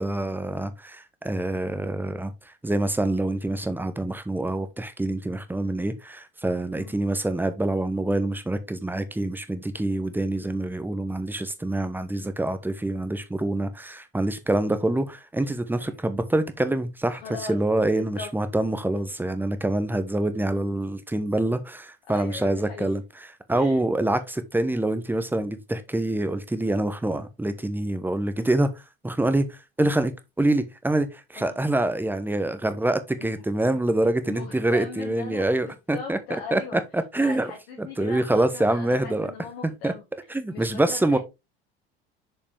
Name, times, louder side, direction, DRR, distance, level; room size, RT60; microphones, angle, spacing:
voice 1, 0.0-17.2 17.5-23.0 23.5-28.7 29.0-30.1 30.4-36.2 36.5-37.5 37.8-39.3 39.8-39.9 40.3-41.2, right 1 dB, 5° right, 1.0 m, -26 dB
voice 2, 17.1-17.6 17.9-18.3 22.1-22.9 23.5-23.8 31.3-31.6 33.2-33.8 34.2-36.8 37.2-41.2, left 5 dB, 65° left, 2.0 m, -40 dB
6.5 x 5.6 x 3.4 m
figure-of-eight pair, 65°, 31 cm